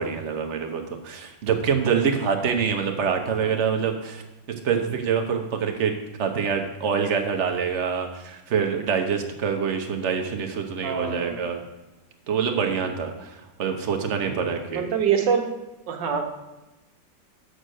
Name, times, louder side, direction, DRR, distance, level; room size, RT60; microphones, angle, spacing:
voice 1, 0.0-4.2 4.5-11.6 12.3-14.9, right 6 dB, 50° right, 5 dB, 0.9 m, -26 dB
voice 2, 10.8-11.5 14.3-15.5 15.9-16.2, right 7 dB, 75° right, 5 dB, 1.6 m, -26 dB
6.5 x 6.5 x 6.4 m, 1.0 s
omnidirectional pair, 2.0 m